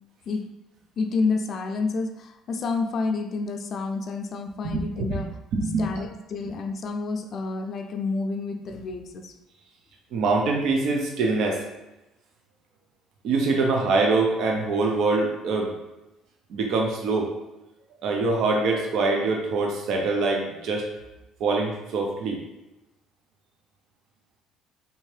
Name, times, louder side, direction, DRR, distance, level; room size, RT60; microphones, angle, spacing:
voice 1, 1.0-5.4 5.8-9.3, left 4 dB, 50° left, 7 dB, 0.4 m, -29 dB
voice 2, 5.5-5.9 10.1-11.6 13.2-15.7 16.5-17.3 18.0-20.9 21.4-22.4, right 3 dB, 65° right, 0 dB, 0.5 m, -24 dB
3.4 x 2.7 x 3.2 m, 0.96 s
cardioid pair, 115°, 0 cm